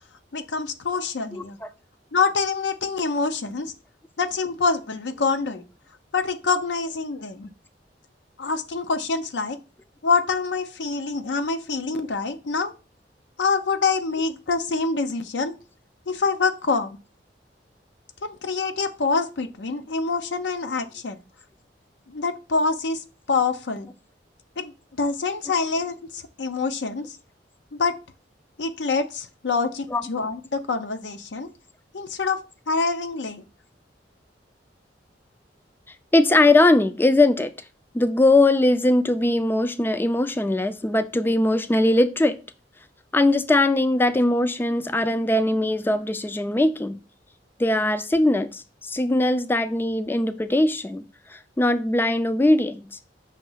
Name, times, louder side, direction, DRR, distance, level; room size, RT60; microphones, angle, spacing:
voice 1, 0.3-1.6 2.1-3.7 4.2-5.6 6.1-7.5 8.4-9.6 10.0-12.7 13.4-15.5 16.1-17.0 18.2-21.2 22.1-23.9 24.6-27.2 27.7-27.9 28.6-31.5 31.9-32.4 32.7-33.4, left 4 dB, 80° left, 0.6 m, -26 dB
voice 2, 36.1-37.5 37.9-42.4 43.1-47.0 47.6-51.0 51.3-52.9, left 2 dB, 10° left, 0.3 m, -20 dB
5.7 x 3.0 x 5.5 m
head